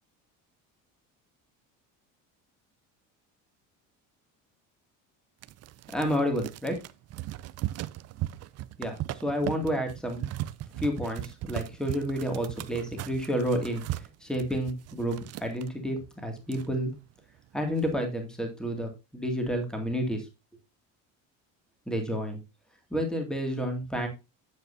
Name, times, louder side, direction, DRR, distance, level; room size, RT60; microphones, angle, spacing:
sound 1, 5.4-15.7 16.2-16.3 16.4-17.1 17.5-17.9, right 15 dB, 45° right, 0.5 m, -38 dB
voice 1, 5.9-6.8 8.8-10.3 10.8-16.9 17.5-20.3 21.9-22.4 22.9-24.1, equal, ahead, 3 dB, 2.1 m, -30 dB
9.0 x 7.7 x 2.6 m, 0.26 s
cardioid pair, 120°, 35 cm